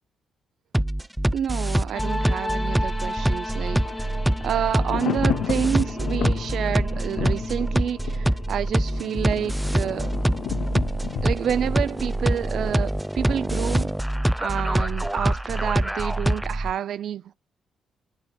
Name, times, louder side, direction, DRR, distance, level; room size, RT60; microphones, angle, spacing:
sound 1, 0.7-16.7, right 1 dB, 5° right, 0.3 m, -25 dB
voice 1, 1.3-4.1 4.4-10.1 11.2-13.9 14.4-17.3, right 9 dB, 65° right, 0.5 m, -28 dB
Thunder, 1.9-12.9 13.2-13.3, left 10 dB, 80° left, 0.5 m, -35 dB
sound 2, 1.9-14.6, left 1 dB, 25° left, 1.3 m, -37 dB
9.3 x 6.0 x 2.3 m
cardioid pair, 90°, 0 cm